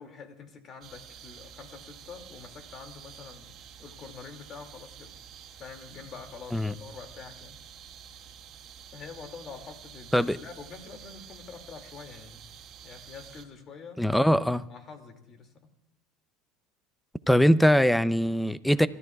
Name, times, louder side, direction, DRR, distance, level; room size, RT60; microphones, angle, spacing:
voice 1, 0.0-3.5 3.8-5.1 5.6-7.5 8.9-12.4 12.8-14.0 14.7-15.5, left 5 dB, 40° left, 2.4 m, -46 dB
sound 1, 0.8-13.4, right 8 dB, 50° right, 2.1 m, -49 dB
voice 2, 14.0-14.6 17.3-18.9, equal, 5° left, 0.5 m, -22 dB
28.5 x 13.5 x 2.4 m
supercardioid pair, 105°, 0 cm